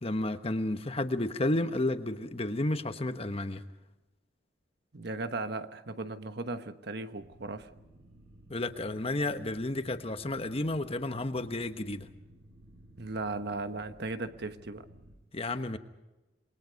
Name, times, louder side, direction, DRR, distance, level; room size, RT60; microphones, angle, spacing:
voice 1, 0.0-3.6 8.5-12.1 15.3-15.8, left 2 dB, 30° left, 9 dB, 1.2 m, -31 dB
voice 2, 4.9-7.7 13.0-14.9, right 3 dB, 60° right, 9 dB, 1.2 m, -37 dB
sound 1, 7.2-15.2, right 1 dB, 80° right, 7.6 m, -56 dB
28.0 x 21.5 x 5.3 m, 1.0 s
head